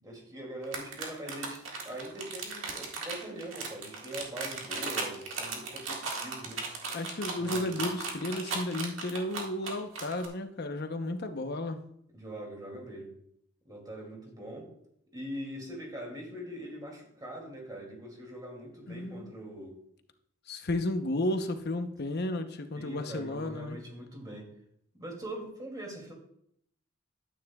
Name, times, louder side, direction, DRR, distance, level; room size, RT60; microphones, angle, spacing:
voice 1, 0.0-6.7 7.4-7.8 12.1-13.1 13.6-14.7 15.1-19.8 22.7-24.5 24.9-26.1, right 1 dB, 20° right, 0 dB, 2.5 m, -42 dB
sound 1, 0.6-10.3, right 4 dB, 75° right, 1.8 m, -36 dB
voice 2, 6.9-11.8 18.9-19.3 20.5-23.8, left 1 dB, 55° left, 7 dB, 0.8 m, -33 dB
12.5 x 9.2 x 2.3 m, 0.71 s
head